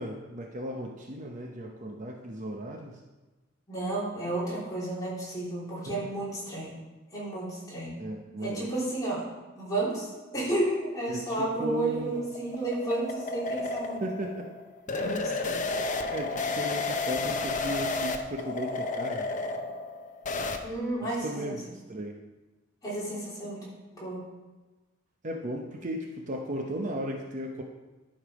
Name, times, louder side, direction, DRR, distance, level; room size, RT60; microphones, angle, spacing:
voice 1, 0.0-3.0 5.9-6.2 8.0-8.7 11.1-12.3 14.0-14.5 14.9-15.7 16.1-19.3 21.0-22.2 25.2-27.6, equal, 40° right, 1 dB, 0.8 m, -36 dB
voice 2, 3.7-6.8 7.1-8.0 8.4-9.2 9.6-14.0 14.9-15.6 20.6-21.6 22.8-24.2, right 2 dB, 20° left, -7 dB, 3.5 m, -32 dB
sound 1, 11.6-20.6, left 3 dB, 40° left, 0.7 m, -32 dB
11.5 x 5.5 x 5.1 m, 1.2 s
head